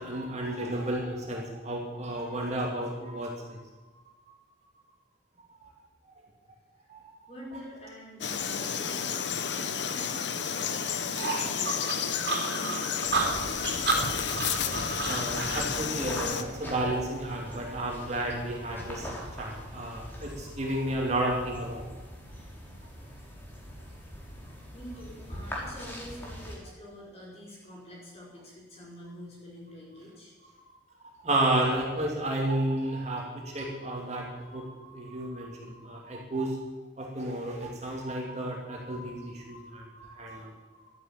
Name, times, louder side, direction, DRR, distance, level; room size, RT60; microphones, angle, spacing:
voice 1, 0.0-3.6 5.6-5.7 6.9-7.1 15.0-21.9 30.6-30.7 31.0-36.6 37.0-40.9, right 1 dB, 35° right, -1 dB, 2.7 m, -32 dB
voice 2, 7.3-14.0 24.7-30.3, left 1 dB, 35° left, -4 dB, 5.8 m, -46 dB
Frog, 8.2-16.4, left 7 dB, 70° left, 1.0 m, -31 dB
sound 1, 11.2-15.7, right 3 dB, 55° right, 3.6 m, -31 dB
sound 2, 13.0-26.6, equal, 10° left, 4.1 m, -42 dB
13.0 x 10.5 x 8.9 m, 1.2 s
head